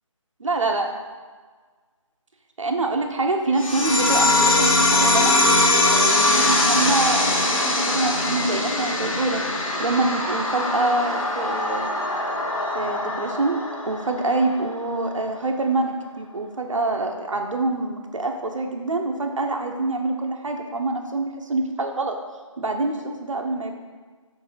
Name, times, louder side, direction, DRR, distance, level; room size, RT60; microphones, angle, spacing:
voice 1, 0.4-0.9 2.6-5.3 5.6-9.4 9.8-11.9 12.7-13.6 13.9-22.1 22.6-23.8, right 2 dB, 70° right, 3 dB, 0.9 m, -25 dB
sound 1, 3.6-14.6, left 2 dB, 85° left, 1.2 m, -21 dB
7.1 x 2.7 x 5.2 m, 1.5 s
figure-of-eight pair, 165°, 17 cm